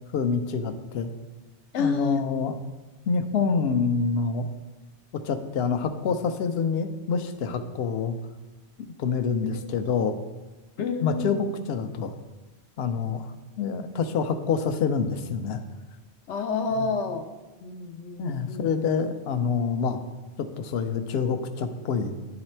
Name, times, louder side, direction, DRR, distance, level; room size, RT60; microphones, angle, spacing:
voice 1, 0.1-1.1 1.8-2.6 3.1-4.5 5.1-8.2 9.0-10.2 11.0-12.1 12.8-15.6 16.7-16.9 18.2-20.0 20.4-22.2, left 5 dB, 70° left, 9 dB, 0.8 m, -27 dB
voice 2, 1.7-2.3 9.4-9.6 10.8-11.5 16.3-17.3 17.6-18.7, left 5 dB, 90° left, 6 dB, 1.0 m, -28 dB
10.5 x 4.0 x 4.3 m, 1.1 s
omnidirectional pair, 1.1 m